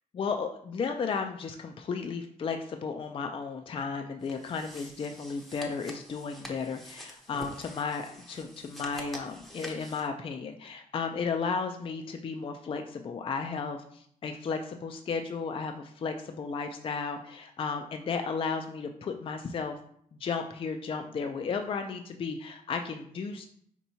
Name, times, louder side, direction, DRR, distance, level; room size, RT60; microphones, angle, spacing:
voice 1, 0.1-19.8 20.2-23.5, left 5 dB, 35° left, 5 dB, 0.4 m, -34 dB
sound 1, 4.2-10.1, equal, ahead, 0.7 m, -46 dB
4.5 x 4.4 x 2.7 m, 0.64 s
wide cardioid pair, 135°, 15 cm